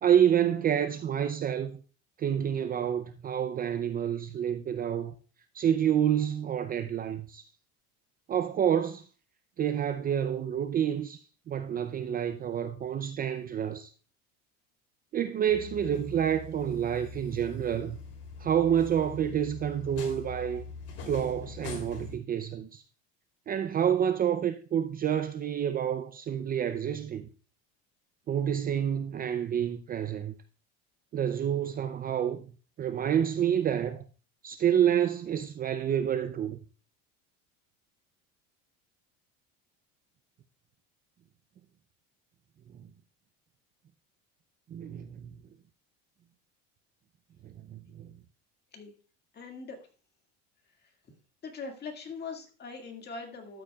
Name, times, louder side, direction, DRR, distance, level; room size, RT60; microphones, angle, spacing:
voice 1, 0.0-1.8 2.2-5.1 5.5-7.4 8.3-9.1 9.6-13.9 15.1-18.0 18.4-20.6 21.1-22.8 23.5-27.3 28.3-30.3 31.1-32.4 32.8-34.0 34.4-36.6 44.7-45.3 47.4-48.1, right 9 dB, 30° right, 0.5 m, -28 dB
sound 1, 15.5-22.2, left 5 dB, 50° left, 2.9 m, -43 dB
voice 2, 49.3-49.8 50.8-50.9 51.4-53.6, left 4 dB, 30° left, 1.9 m, -41 dB
12.5 x 7.7 x 2.3 m
supercardioid pair, 125°, 32 cm